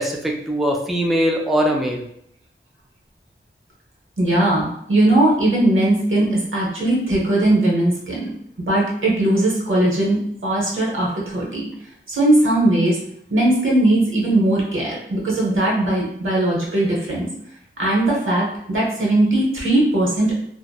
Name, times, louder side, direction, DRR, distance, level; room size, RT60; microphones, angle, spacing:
voice 1, 0.0-2.0, equal, ahead, 0 dB, 0.4 m, -21 dB
voice 2, 4.2-8.3 8.7-11.7 12.1-13.0 13.3-17.3 17.8-20.3, right 1 dB, 75° right, -4 dB, 0.9 m, -19 dB
2.8 x 2.0 x 2.3 m, 0.71 s
wide cardioid pair, 50°, 21 cm